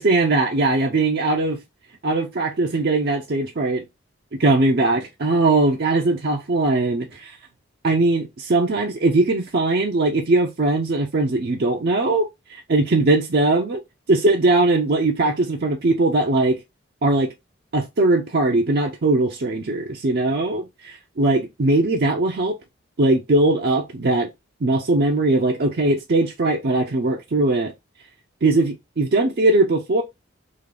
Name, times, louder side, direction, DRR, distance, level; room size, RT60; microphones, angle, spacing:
voice 1, 0.0-1.6 2.0-3.8 4.4-7.4 7.8-13.8 14.1-16.6 17.0-17.3 17.7-22.6 23.0-24.3 24.6-27.7 28.4-30.0, right 2 dB, 50° right, 0.5 m, -20 dB
3.7 x 2.4 x 3.3 m
head